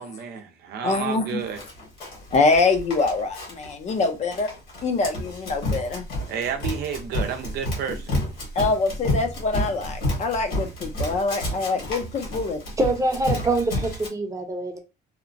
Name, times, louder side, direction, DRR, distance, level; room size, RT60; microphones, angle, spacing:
voice 1, 0.0-1.6 6.3-8.2, right 7 dB, 70° right, 0.6 m, -31 dB
voice 2, 0.8-1.4 2.3-4.5 4.8-6.0 8.6-12.6, left 3 dB, 40° left, 0.6 m, -24 dB
Run, 1.6-14.1, left 1 dB, 70° left, 1.5 m, -30 dB
voice 3, 12.8-14.8, right 2 dB, 20° right, 0.7 m, -24 dB
2.8 x 2.1 x 2.5 m
cardioid pair, 110°, 17 cm